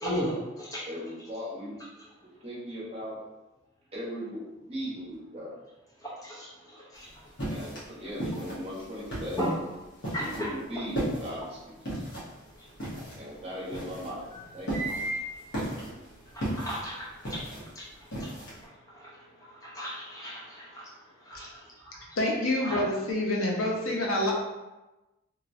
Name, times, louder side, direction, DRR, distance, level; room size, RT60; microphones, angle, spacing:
voice 1, 0.0-0.8 6.0-6.5 6.9-7.1 9.4-9.5 10.1-10.5 14.7-15.3 16.3-17.4 17.8-17.9 18.2-18.3 19.6-20.9 21.3-21.5 22.6-22.8, equal, 15° left, -5 dB, 0.7 m, -34 dB
voice 2, 0.9-1.8 2.2-3.2 3.9-5.6 7.5-9.4 10.3-12.0 13.2-14.2 14.5-14.8, equal, 30° right, -7 dB, 0.9 m, -38 dB
sound 1, 7.0-18.6, right 1 dB, 55° left, 1.1 m, -36 dB
voice 3, 22.2-24.3, left 1 dB, 85° left, -2 dB, 0.7 m, -27 dB
2.9 x 2.8 x 2.6 m, 1.1 s
head